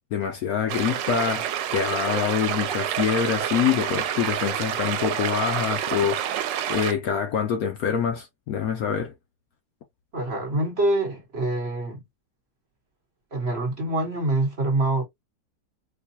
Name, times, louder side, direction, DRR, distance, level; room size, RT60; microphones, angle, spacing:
voice 1, 0.1-6.3 6.7-9.1, left 8 dB, 65° left, 1.0 m, -25 dB
sound 1, 0.7-6.9, right 10 dB, 85° right, 1.3 m, -28 dB
voice 2, 10.1-12.0 13.3-15.0, right 2 dB, 40° right, 1.2 m, -25 dB
4.7 x 2.3 x 2.6 m
omnidirectional pair, 1.9 m